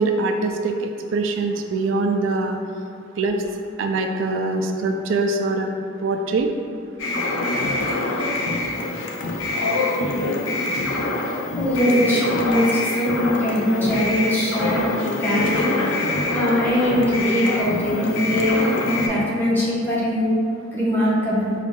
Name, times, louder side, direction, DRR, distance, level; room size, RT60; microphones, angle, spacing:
voice 1, 0.0-2.6 3.2-3.4 3.8-5.7 6.0-6.5, right 3 dB, 70° right, 3 dB, 0.3 m, -23 dB
sound 1, 7.0-19.1, left 2 dB, 70° left, 0.5 m, -24 dB
voice 2, 11.6-14.8 15.2-15.7 16.3-20.3 20.7-21.5, equal, 10° left, -7 dB, 0.9 m, -21 dB
5.0 x 2.4 x 3.6 m, 2.3 s
head